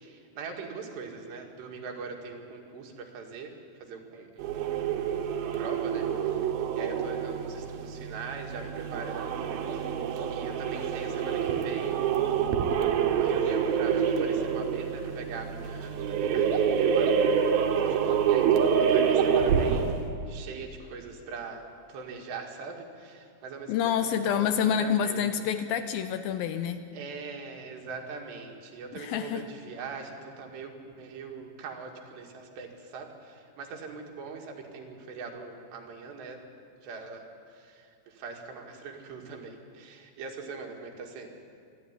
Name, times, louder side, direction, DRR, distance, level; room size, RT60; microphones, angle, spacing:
voice 1, 0.0-3.5 3.8-4.6 5.0-6.5 6.7-9.9 10.3-12.6 13.1-17.1 18.0-25.3 26.9-36.4 36.8-41.3, right 4 dB, 90° right, 2 dB, 4.2 m, -42 dB
sound 1, 4.4-20.1, right 7 dB, 70° right, 3.0 m, -27 dB
voice 2, 23.7-26.8 28.9-29.4, left 8 dB, 80° left, 9 dB, 2.3 m, -27 dB
27.0 x 11.5 x 9.7 m, 2.4 s
omnidirectional pair, 4.7 m